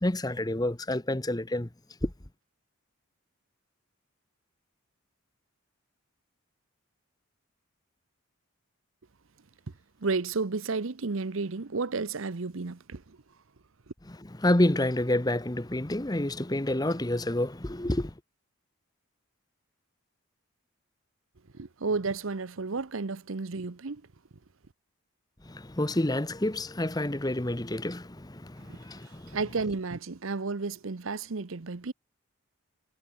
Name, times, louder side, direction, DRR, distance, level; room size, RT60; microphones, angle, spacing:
voice 1, 0.0-1.7 2.0-2.1 14.4-18.1 25.5-29.4, left 1 dB, 20° left, 1.0 m, -28 dB
voice 2, 10.0-13.0 21.5-24.0 29.3-31.9, right 4 dB, 70° right, 0.8 m, -32 dB
head